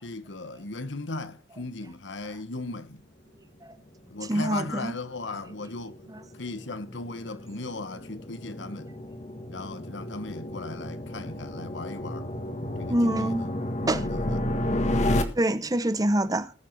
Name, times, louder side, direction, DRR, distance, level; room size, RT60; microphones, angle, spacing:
voice 1, 0.0-3.0 4.1-6.0 6.4-8.9 9.5-12.3 12.8-15.0, left 2 dB, 80° left, 1.2 m, -37 dB
sound 1, 4.1-15.2, left 1 dB, 40° left, 1.6 m, -32 dB
voice 2, 4.3-4.9 12.9-13.4 13.9-14.0 15.4-16.5, right 1 dB, 20° right, 0.7 m, -25 dB
19.5 x 6.7 x 4.7 m
head